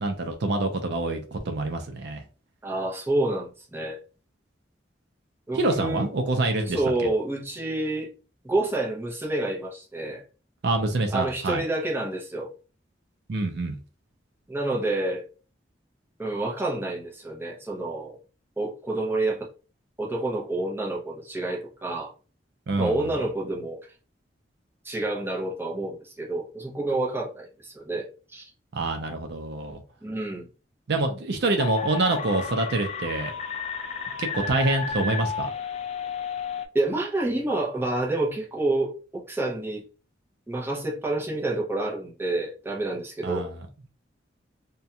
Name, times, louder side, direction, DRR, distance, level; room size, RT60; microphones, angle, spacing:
voice 1, 0.0-2.2 5.5-7.1 10.6-11.6 13.3-13.8 22.7-23.2 28.7-29.8 30.9-33.3 34.2-35.5 43.2-43.5, right 2 dB, 65° right, 0.5 m, -26 dB
voice 2, 2.6-4.0 5.5-6.1 6.7-8.1 8.4-10.2 11.1-12.5 14.5-15.2 16.2-18.2 18.6-19.5 20.0-22.1 22.8-23.8 24.8-28.5 30.0-30.5 36.7-39.8 40.5-43.5, right 2 dB, 15° right, 0.6 m, -28 dB
sound 1, 31.6-36.7, left 5 dB, 35° left, 0.3 m, -32 dB
2.4 x 2.2 x 2.7 m
head